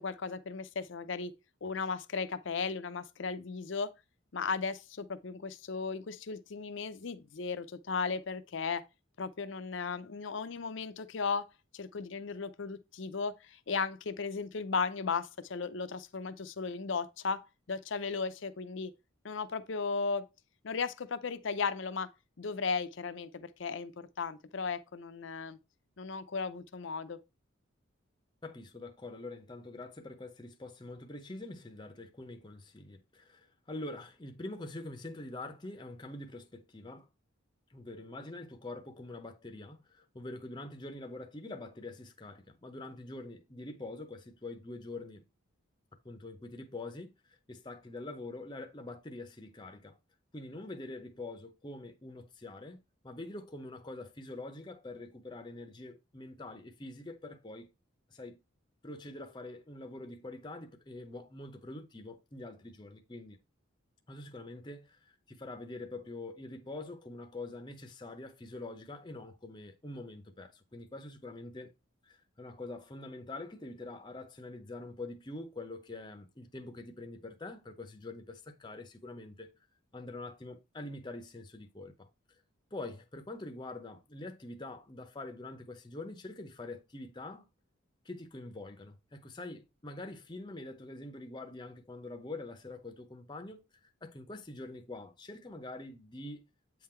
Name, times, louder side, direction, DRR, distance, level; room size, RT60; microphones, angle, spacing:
voice 1, 0.0-1.3 1.6-3.9 4.3-8.8 9.2-11.5 11.7-17.4 17.7-18.9 19.2-20.2 20.6-22.1 22.4-25.6 26.0-27.2, left 5 dB, 65° left, 0.6 m, -36 dB
voice 2, 28.4-37.1 37.7-45.2 46.0-50.0 50.3-57.7 58.1-58.4 58.8-63.4 64.1-71.7 72.0-79.5 79.9-82.1 82.7-87.4 88.0-93.6 94.0-96.4, left 2 dB, 20° left, 0.7 m, -45 dB
8.3 x 3.8 x 4.3 m
head